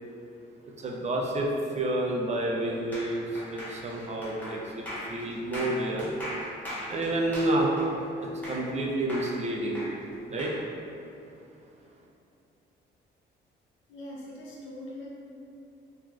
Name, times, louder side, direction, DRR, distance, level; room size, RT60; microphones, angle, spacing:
voice 1, 0.8-1.5 1.8-3.2 3.5-4.8 5.1-6.1 6.9-7.7 8.5-9.8 10.3-10.5, right 1 dB, 35° right, -2 dB, 0.4 m, -29 dB
sound 1, 2.9-8.8 9.1-10.6, equal, 10° left, 0.9 m, -39 dB
voice 2, 13.9-15.1, left 1 dB, 80° left, -5 dB, 0.6 m, -41 dB
3.0 x 2.4 x 2.4 m, 2.5 s
cardioid pair, 90°, 20 cm